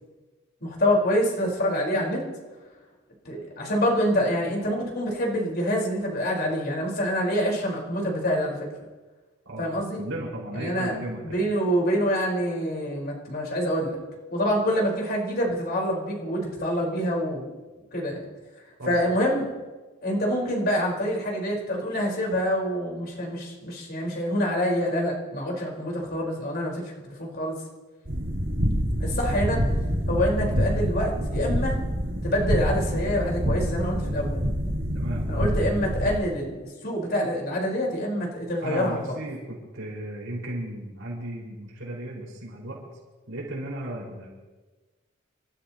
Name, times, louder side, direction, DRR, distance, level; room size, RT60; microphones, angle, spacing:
voice 1, 0.6-2.2 3.2-8.6 9.6-10.0 10.6-11.0 11.2-14.0 14.3-17.5 17.9-18.3 18.9-19.4 20.0-27.6 29.0-29.6 30.1-31.8 32.2-34.4 35.3-39.0, equal, 50° left, -2 dB, 4.5 m, -26 dB
voice 2, 10.0-11.3 18.8-19.2 34.9-35.2 36.0-36.1 38.6-42.8 43.3-44.3, right 1 dB, 80° right, -4 dB, 5.2 m, -35 dB
sound 1, 28.0-36.2, equal, 65° right, 2.4 m, -26 dB
29.0 x 13.0 x 3.0 m, 1.2 s
head